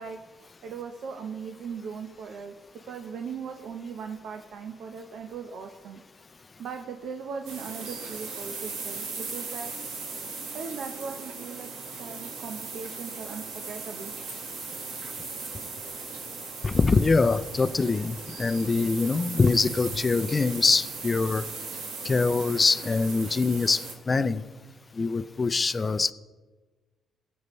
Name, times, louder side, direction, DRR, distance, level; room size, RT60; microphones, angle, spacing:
voice 1, 0.0-2.6 2.8-6.0 6.6-9.7 10.5-11.7 12.0-14.1, right 6 dB, 70° right, 4 dB, 0.9 m, -39 dB
sound 1, 7.5-24.0, right 4 dB, 90° right, 1.7 m, -38 dB
voice 2, 16.6-21.5 22.0-24.4 24.9-26.1, left 4 dB, 30° left, 13 dB, 0.5 m, -24 dB
20.5 x 8.2 x 3.2 m, 1.4 s
cardioid pair, 90°, 0 cm